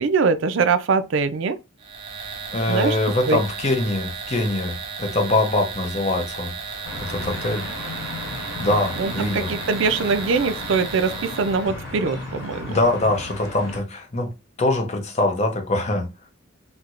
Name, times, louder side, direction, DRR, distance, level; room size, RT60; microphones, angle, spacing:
voice 1, 0.0-1.6 2.7-3.0 3.2-3.4 9.0-12.8, right 4 dB, 70° right, 0.4 m, -22 dB
sound 1, 1.8-11.7, right 5 dB, 25° right, 0.7 m, -34 dB
voice 2, 2.5-7.7 8.6-9.5 12.7-14.3 14.6-16.1, left 2 dB, 35° left, 0.6 m, -23 dB
sound 2, 6.8-13.8, left 2 dB, 50° left, 1.2 m, -34 dB
4.3 x 2.1 x 2.4 m
head